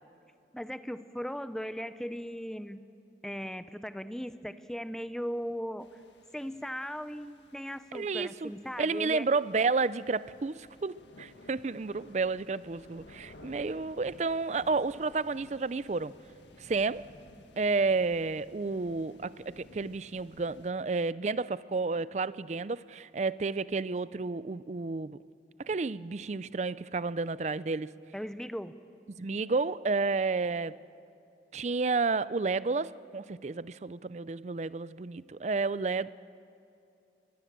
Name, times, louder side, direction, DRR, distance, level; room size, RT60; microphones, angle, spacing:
voice 1, 0.5-2.8 3.2-6.0 6.3-9.3 28.1-28.7, equal, 5° left, 12 dB, 0.6 m, -38 dB
sound 1, 5.8-20.7, left 1 dB, 80° left, 1.7 m, -56 dB
voice 2, 7.9-8.5 8.8-16.1 16.6-17.1 17.6-25.2 25.6-27.9 29.1-30.8 31.5-36.1, right 4 dB, 40° right, 18 dB, 0.4 m, -31 dB
23.5 x 21.0 x 7.5 m, 2.7 s
head